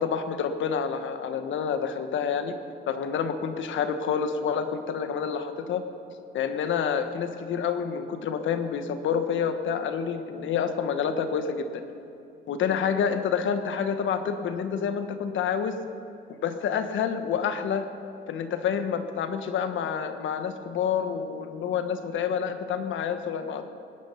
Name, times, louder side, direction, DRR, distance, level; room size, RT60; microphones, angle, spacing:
voice 1, 0.0-2.6 2.9-5.8 6.3-11.7 12.5-15.8 16.4-17.8 18.3-23.6, left 7 dB, 75° left, 9 dB, 1.2 m, -28 dB
19.5 x 10.5 x 5.7 m, 2.8 s
cardioid pair, 90°, 20 cm